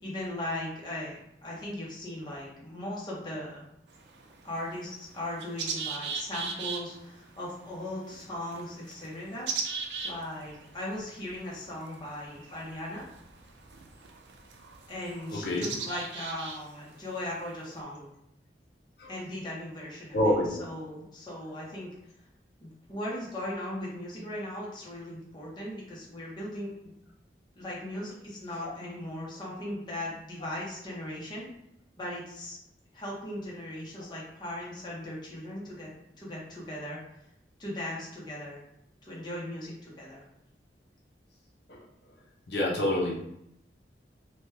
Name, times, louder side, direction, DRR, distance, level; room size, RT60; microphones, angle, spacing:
voice 1, 0.0-3.6 4.4-13.1 14.9-18.1 19.1-21.9 22.6-26.9 27.6-31.5 32.0-32.6 32.9-37.0 37.6-38.6 39.0-40.2, left 1 dB, 25° left, -5 dB, 0.8 m, -38 dB
sound 1, 3.9-17.8, right 5 dB, 85° right, 0.4 m, -40 dB
voice 2, 15.3-15.7 19.0-19.1 20.1-20.6 41.7-41.8 42.5-43.1, left 1 dB, 65° left, -3 dB, 0.7 m, -27 dB
2.9 x 2.2 x 3.2 m, 0.78 s
head